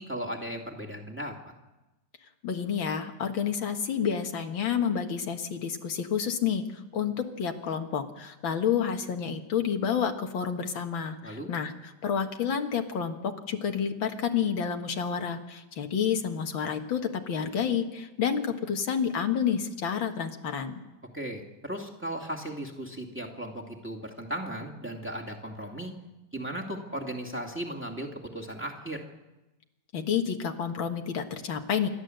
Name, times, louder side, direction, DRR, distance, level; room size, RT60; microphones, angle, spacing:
voice 1, 0.0-1.5 11.2-11.5 21.1-25.9 26.3-29.0, right 1 dB, 5° right, 2 dB, 2.2 m, -36 dB
voice 2, 2.4-11.7 12.0-20.8 29.9-31.9, left 7 dB, 90° left, 5 dB, 2.3 m, -29 dB
27.5 x 12.0 x 7.9 m, 1.0 s
omnidirectional pair, 2.1 m